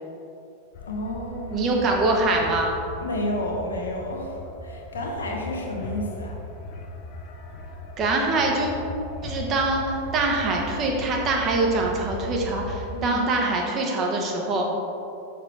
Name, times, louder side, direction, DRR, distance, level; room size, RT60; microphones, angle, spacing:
sound 1, 0.7-12.8, left 1 dB, 45° left, 0.7 m, -37 dB
voice 1, 0.9-1.6 3.0-6.3 12.9-13.2, left 1 dB, 70° left, 0 dB, 1.0 m, -31 dB
voice 2, 1.5-2.7 8.0-8.7 9.2-14.7, right 2 dB, 30° right, 0 dB, 1.1 m, -24 dB
6.4 x 5.9 x 3.4 m, 2.6 s
figure-of-eight pair, 90°, 0 cm